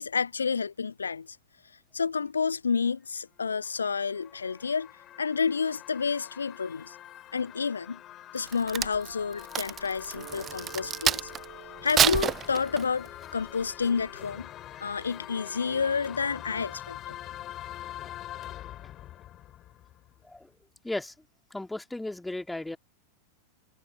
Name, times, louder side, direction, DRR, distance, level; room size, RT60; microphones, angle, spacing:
voice 1, 0.0-1.4 1.9-4.9 5.2-7.0 7.3-8.0 8.3-11.3 11.8-14.5 14.8-17.2, left 5 dB, 75° left, 0.3 m, -30 dB
sound 1, 3.5-20.4, left 13 dB, 30° left, 3.8 m, -45 dB
Crack, 8.4-11.4 11.9-13.1 13.6-13.8, right 9 dB, 25° right, 0.5 m, -28 dB
sound 2, 10.1-15.3, right 18 dB, 50° right, 2.8 m, -52 dB
voice 2, 21.5-22.8, left 2 dB, 5° left, 2.8 m, -35 dB
figure-of-eight pair, 90°, 0 cm